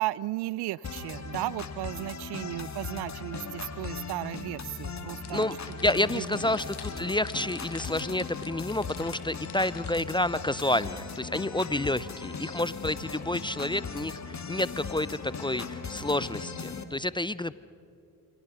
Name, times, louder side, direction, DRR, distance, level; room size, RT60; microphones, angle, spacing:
voice 1, 0.0-5.6 6.1-6.3, right 17 dB, 60° right, 22 dB, 0.5 m, -34 dB
sound 1, 0.8-16.8, left 5 dB, 35° left, 2.0 m, -38 dB
sound 2, 5.2-10.3, left 8 dB, 55° left, 2.6 m, -47 dB
voice 2, 5.3-17.5, left 1 dB, 10° left, 18 dB, 0.5 m, -29 dB
28.0 x 25.0 x 5.7 m, 2.6 s
hypercardioid pair, 45°, 47 cm